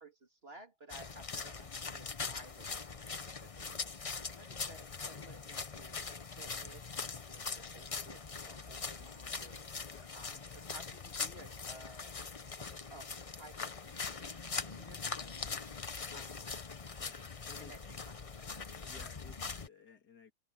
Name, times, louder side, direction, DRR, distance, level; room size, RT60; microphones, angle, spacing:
voice 1, 0.0-12.2 12.6-16.5 17.6-18.7, right 2 dB, 35° right, 3.3 m, -57 dB
sound 1, 0.9-19.7, left 5 dB, 35° left, 0.6 m, -42 dB
voice 2, 17.0-17.7 18.8-20.3, left 4 dB, 75° left, 3.0 m, -57 dB
open air
omnidirectional pair, 1.7 m